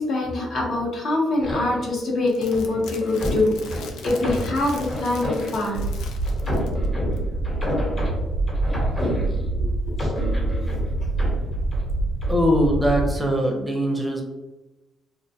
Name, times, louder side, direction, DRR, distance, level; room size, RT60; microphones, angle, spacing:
voice 1, 0.0-5.9 9.6-9.7, left 2 dB, 65° left, -2 dB, 0.8 m, -24 dB
sound 1, 1.4-2.0 2.5-5.8 6.3-9.6 10.0-11.9 12.2-12.4, equal, 30° left, 0.9 m, -30 dB
sound 2, 2.3-6.9 7.2-7.3, left 3 dB, 85° left, 0.3 m, -40 dB
sound 3, 5.7-13.1, right 2 dB, 85° right, 0.5 m, -26 dB
voice 2, 12.3-14.2, equal, 10° right, 2 dB, 0.5 m, -21 dB
2.4 x 2.1 x 2.6 m, 1.1 s
cardioid pair, 90°, 0 cm